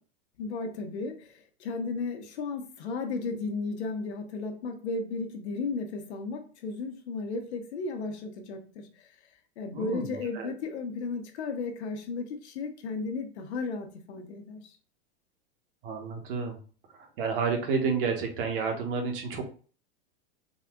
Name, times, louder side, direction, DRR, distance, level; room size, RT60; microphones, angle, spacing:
voice 1, 0.4-9.1 9.6-14.7, left 3 dB, 85° left, 1.0 m, -34 dB
voice 2, 9.7-10.5 15.8-16.6 17.2-19.4, right 5 dB, 55° right, 1.2 m, -30 dB
4.1 x 2.3 x 3.7 m
supercardioid pair, 160°, 32 cm